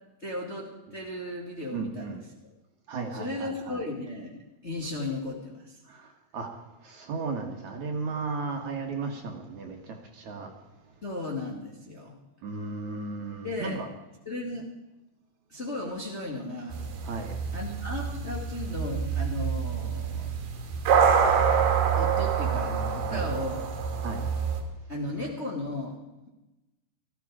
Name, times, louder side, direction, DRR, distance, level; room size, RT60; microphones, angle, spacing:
voice 1, 0.2-2.1 3.1-5.8 11.0-12.2 13.4-13.8 14.3-14.7 15.5-16.8 17.5-20.3 21.1-21.4 21.9-23.6 24.9-26.0, left 2 dB, 25° left, -1 dB, 1.8 m, -35 dB
voice 2, 1.7-2.2 2.9-3.8 5.9-6.1 6.3-6.5 6.8-10.5 12.4-13.9 17.0-17.3 23.1-23.3 24.0-24.2, right 4 dB, 55° right, 3 dB, 2.6 m, -35 dB
sound 1, 16.7-24.6, right 7 dB, 90° right, 4.0 m, -26 dB
18.5 x 14.5 x 5.0 m, 0.99 s
omnidirectional pair, 4.3 m